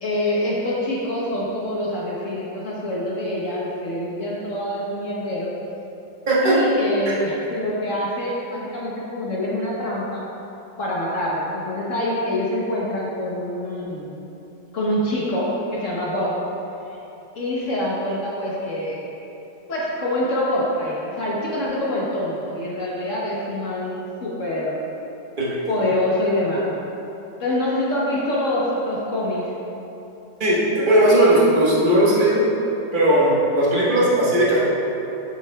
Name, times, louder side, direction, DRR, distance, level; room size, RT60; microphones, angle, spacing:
voice 1, 0.0-5.5 6.4-10.2 10.8-14.2 14.7-16.3 17.3-19.0 19.7-24.8 25.7-26.7 27.4-29.5, left 1 dB, 55° left, -6 dB, 0.9 m, -25 dB
voice 2, 30.4-32.4 32.9-34.6, right 1 dB, 30° right, -7 dB, 1.1 m, -17 dB
7.1 x 7.0 x 2.2 m, 3.0 s
omnidirectional pair, 2.2 m